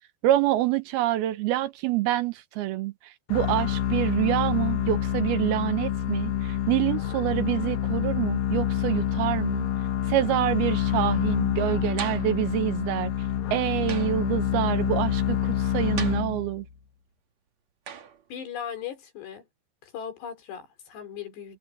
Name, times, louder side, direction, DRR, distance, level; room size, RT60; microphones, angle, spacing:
voice 1, 0.2-9.7 10.1-13.1 13.5-16.7, right 14 dB, 75° right, 2.7 m, -26 dB
sound 1, 3.3-16.7, left 10 dB, 65° left, 2.9 m, -27 dB
sound 2, 12.0-12.4 13.9-14.3 16.0-16.7 17.9-18.2, right 8 dB, 50° right, 2.6 m, -39 dB
voice 2, 18.3-19.5 19.8-21.6, left 8 dB, 90° left, 6.0 m, -38 dB
omnidirectional pair, 4.7 m